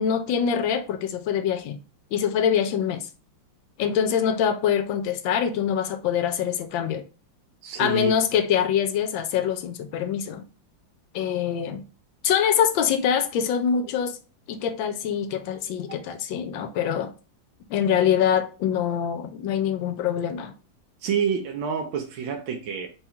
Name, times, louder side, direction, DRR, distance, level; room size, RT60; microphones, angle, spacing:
voice 1, 0.0-1.8 2.1-3.1 3.8-7.0 7.8-10.5 11.1-11.8 12.2-14.2 14.5-17.1 17.7-20.5, left 8 dB, 85° left, 1.4 m, -24 dB
voice 2, 7.6-8.1 15.9-16.0 21.0-22.9, right 7 dB, 85° right, 1.4 m, -28 dB
4.0 x 2.3 x 4.2 m
omnidirectional pair, 2.1 m